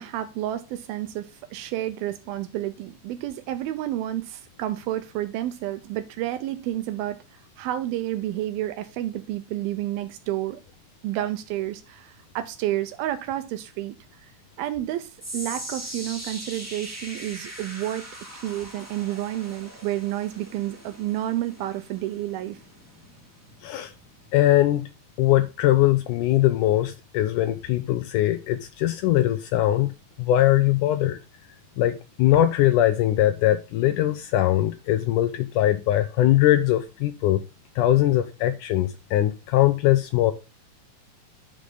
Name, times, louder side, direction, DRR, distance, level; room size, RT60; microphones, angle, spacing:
voice 1, 0.0-7.2 7.6-10.6 11.0-14.0 14.6-18.1 18.4-22.6, right 13 dB, 85° right, 2.6 m, -30 dB
sound 1, 15.2-27.5 27.8-28.2 28.8-28.9, right 1 dB, 10° right, 1.0 m, -42 dB
voice 2, 23.6-23.9 24.3-24.9 25.2-29.9 30.2-31.2 31.8-37.4 37.8-40.3, left 14 dB, 80° left, 1.8 m, -21 dB
11.5 x 5.0 x 3.8 m
omnidirectional pair, 4.3 m